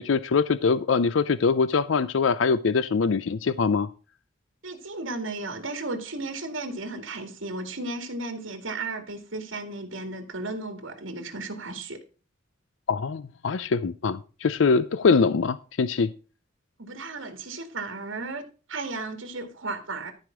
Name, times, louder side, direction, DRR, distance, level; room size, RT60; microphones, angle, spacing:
voice 1, 0.0-3.9 12.9-16.1, left 5 dB, 75° left, 0.5 m, -23 dB
voice 2, 4.6-12.0 16.8-18.4 18.7-20.1, right 2 dB, 90° right, 2.2 m, -34 dB
13.0 x 5.0 x 6.0 m
head